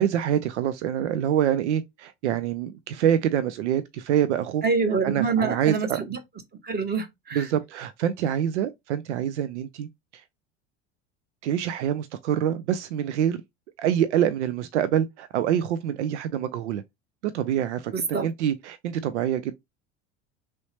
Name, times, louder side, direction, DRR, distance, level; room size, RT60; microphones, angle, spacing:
voice 1, 0.0-4.6 5.0-6.0 7.3-10.2 11.4-13.4 13.8-16.8 17.2-19.5, right 10 dB, 90° right, 0.5 m, -26 dB
voice 2, 4.6-6.2 6.6-7.5 17.9-18.3, right 5 dB, 30° right, 1.0 m, -26 dB
3.1 x 2.7 x 3.2 m
hypercardioid pair, 90°, 34 cm